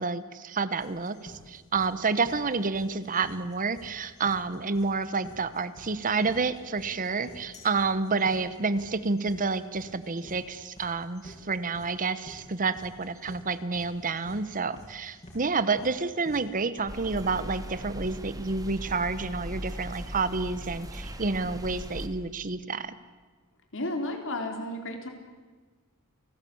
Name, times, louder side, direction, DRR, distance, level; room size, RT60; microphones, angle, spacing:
voice 1, 0.0-23.0, right 4 dB, 35° right, 14 dB, 1.0 m, -29 dB
sound 1, 0.8-16.8, left 1 dB, 30° left, 7.3 m, -49 dB
sound 2, 16.9-22.1, equal, 15° right, 2.1 m, -39 dB
voice 2, 23.7-25.1, left 1 dB, 60° left, 4 dB, 4.1 m, -32 dB
29.0 x 19.0 x 8.6 m, 1.4 s
head